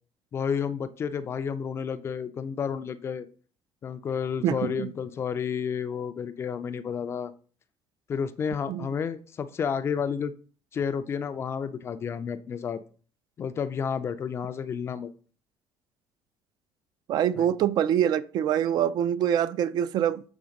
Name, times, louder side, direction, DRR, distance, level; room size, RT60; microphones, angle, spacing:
voice 1, 0.3-3.3 3.8-7.3 8.1-10.3 10.7-12.8 13.4-15.1 17.4-17.5, left 7 dB, 25° left, 0.4 m, -31 dB
voice 2, 4.4-4.9 8.7-8.9 17.1-20.2, right 10 dB, 45° right, 0.4 m, -25 dB
7.0 x 3.5 x 5.1 m
cardioid pair, 175°, 9 cm